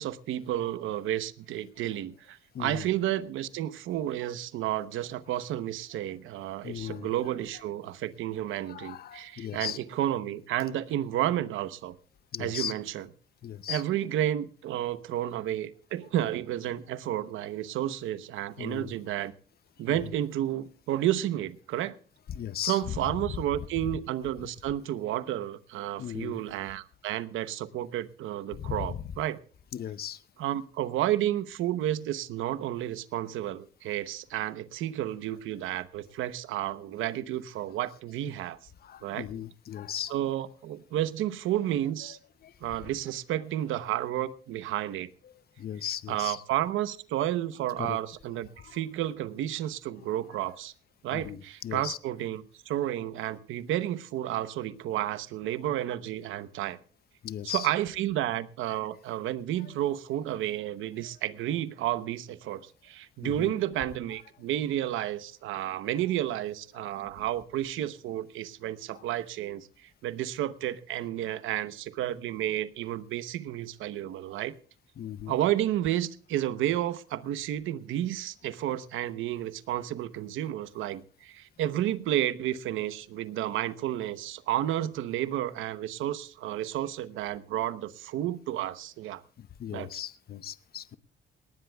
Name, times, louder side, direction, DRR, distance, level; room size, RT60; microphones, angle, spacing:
voice 1, 0.0-11.9 12.4-13.1 13.7-19.3 19.8-22.0 22.7-29.4 30.4-38.6 39.0-39.3 40.1-42.2 42.6-45.1 46.1-50.7 51.0-56.8 57.4-74.5 75.3-89.2 89.7-89.9, right 12 dB, 90° right, 13 dB, 0.9 m, -31 dB
voice 2, 2.5-2.9 6.6-7.1 8.7-9.8 12.3-12.7 13.4-13.8 18.6-19.0 19.9-20.1 22.3-23.1 26.0-26.4 28.5-29.0 29.7-30.2 38.8-40.2 42.0-42.1 42.4-42.5 45.2-46.4 47.8-48.0 48.3-48.8 50.0-50.1 51.1-52.0 57.2-57.7 58.7-58.8 61.0-61.1 63.2-63.5 65.6-65.7 66.7-67.2 68.9-69.1 75.0-75.4 89.4-91.0, left 10 dB, 50° left, 15 dB, 0.7 m, -38 dB
19.0 x 18.5 x 2.3 m, 0.43 s
cardioid pair, 90°, 20 cm